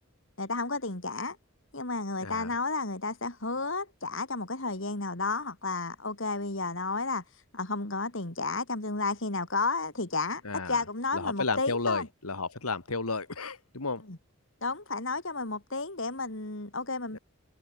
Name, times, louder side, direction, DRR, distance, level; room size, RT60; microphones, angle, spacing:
voice 1, 0.4-1.4 1.7-7.2 7.5-10.4 10.7-12.1 14.1-14.2 14.6-17.2, left 3 dB, 60° left, 2.6 m, -32 dB
voice 2, 2.2-2.5 10.4-10.8 11.1-14.0 17.1-17.2, left 3 dB, 90° left, 2.5 m, -32 dB
head